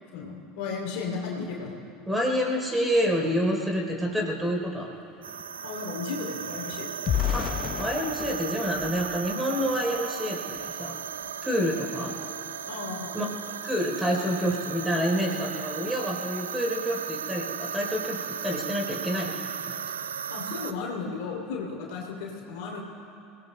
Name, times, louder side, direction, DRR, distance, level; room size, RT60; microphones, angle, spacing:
voice 1, 0.1-1.7 5.6-7.1 12.7-13.2 20.3-22.8, left 4 dB, 55° left, -2 dB, 2.9 m, -34 dB
voice 2, 2.1-4.9 7.3-11.0 11.4-12.1 13.1-19.7, equal, 10° right, 0 dB, 3.6 m, -28 dB
sound 1, 4.1-4.2 4.5-10.0 10.5-10.7 11.0-11.3, left 10 dB, 40° left, 0.6 m, -34 dB
sound 2, 5.2-20.7, right 8 dB, 75° right, 0.4 m, -36 dB
28.5 x 18.5 x 2.2 m, 2.7 s
figure-of-eight pair, 70°, 0 cm